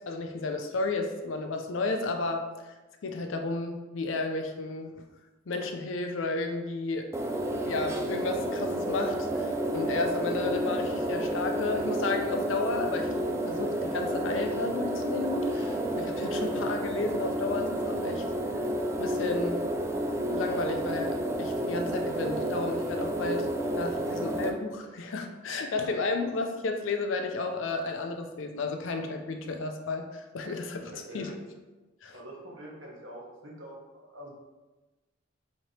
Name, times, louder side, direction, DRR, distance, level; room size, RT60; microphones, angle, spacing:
voice 1, 0.0-2.7 3.0-4.9 5.5-7.1 7.7-18.2 19.0-19.6 20.3-31.3 32.0-32.1, left 3 dB, 70° left, 4 dB, 0.5 m, -32 dB
sound 1, 7.1-24.5, right 1 dB, 15° right, 0.3 m, -30 dB
voice 2, 30.9-31.3 32.1-34.3, right 1 dB, 70° right, -3 dB, 1.1 m, -45 dB
4.2 x 2.9 x 3.2 m, 1.2 s
head